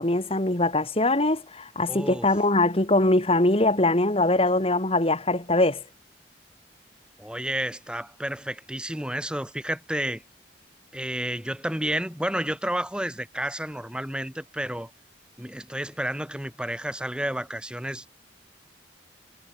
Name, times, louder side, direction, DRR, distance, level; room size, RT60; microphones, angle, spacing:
voice 1, 0.0-5.8, left 2 dB, 30° left, 2.6 m, -22 dB
voice 2, 1.9-2.3 7.2-10.2 10.9-14.9 15.4-18.1, right 1 dB, 5° right, 4.6 m, -31 dB
head